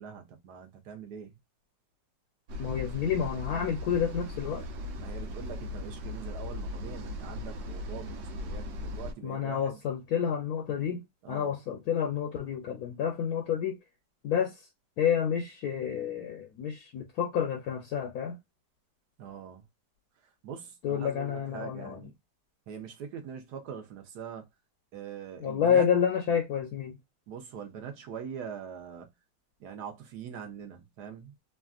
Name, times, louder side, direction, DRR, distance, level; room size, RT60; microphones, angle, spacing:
voice 1, 0.0-1.3 5.0-9.7 11.2-11.6 19.2-19.6 20.4-22.1 22.7-24.4 24.9-25.9 27.3-29.1 29.6-31.3, right 7 dB, 65° right, 1.2 m, -42 dB
sound 1, 2.5-9.1, left 1 dB, 90° right, 1.4 m, -38 dB
voice 2, 2.6-4.7 9.2-13.8 14.2-14.6 15.0-18.4 20.8-22.1 25.4-27.0, left 8 dB, 70° left, 1.0 m, -29 dB
3.2 x 2.5 x 2.3 m
omnidirectional pair, 2.0 m